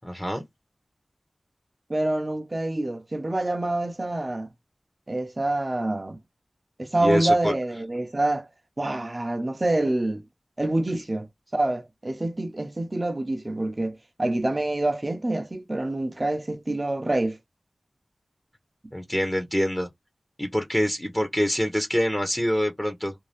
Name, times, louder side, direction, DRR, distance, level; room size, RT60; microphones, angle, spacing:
voice 1, 0.0-0.4 7.0-7.5 18.9-19.9 20.4-23.1, equal, 10° left, 0.7 m, -25 dB
voice 2, 1.9-4.5 5.1-6.2 6.8-8.5 8.8-10.2 10.6-11.3 11.5-17.4, right 2 dB, 35° right, 0.6 m, -26 dB
2.6 x 2.2 x 3.3 m
wide cardioid pair, 50°, 0 cm